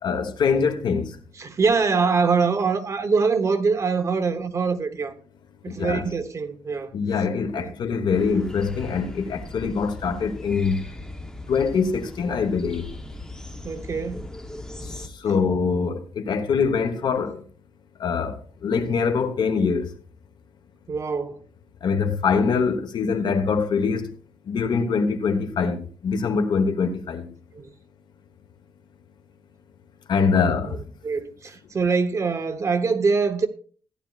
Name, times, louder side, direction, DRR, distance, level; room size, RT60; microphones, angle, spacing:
voice 1, 0.0-1.2 5.7-6.1 6.9-10.8 11.5-12.9 15.0-17.4 18.0-19.9 21.8-24.1 24.4-27.3 30.1-30.8, left 5 dB, 60° left, 1.2 m, -24 dB
voice 2, 1.4-5.1 5.6-6.9 7.6-7.7 13.6-14.3 14.8-15.0 20.9-21.4 27.5-27.7 30.3-30.8 31.0-33.5, right 5 dB, 35° right, 1.0 m, -24 dB
sound 1, 8.1-15.1, left 1 dB, 5° left, 0.9 m, -38 dB
14.5 x 11.0 x 2.4 m
wide cardioid pair, 160°, 9 cm